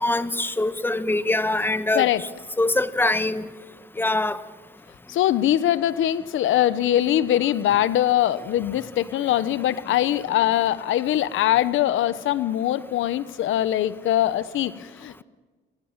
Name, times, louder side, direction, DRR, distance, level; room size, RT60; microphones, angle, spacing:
voice 1, 0.0-2.1 2.6-3.5 4.0-4.4, left 2 dB, 10° left, 13 dB, 1.4 m, -23 dB
voice 2, 5.1-15.2, left 12 dB, 80° left, 16 dB, 1.1 m, -22 dB
28.0 x 24.5 x 7.5 m, 1.4 s
cardioid pair, 90°, 20 cm